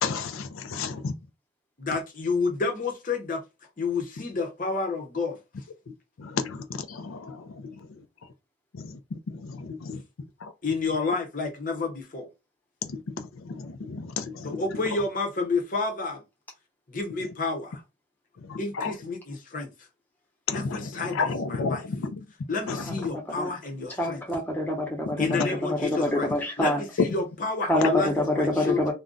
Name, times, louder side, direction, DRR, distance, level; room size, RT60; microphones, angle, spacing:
voice 1, 0.0-1.1 6.2-7.7 8.7-8.9 9.4-10.0 10.4-10.5 12.9-14.6 18.5-18.9 20.5-22.1 22.7-22.8, left 4 dB, 90° left, 0.5 m, -32 dB
voice 2, 1.8-3.4 3.8-5.4 10.6-12.3 14.4-16.2 16.9-17.8 18.6-19.7 20.5-21.9 22.5-24.2 25.2-26.3 26.6-28.9, left 4 dB, 40° left, 0.7 m, -30 dB
voice 3, 24.0-26.8 27.7-28.9, left 1 dB, 10° left, 0.8 m, -26 dB
2.4 x 2.2 x 3.7 m
head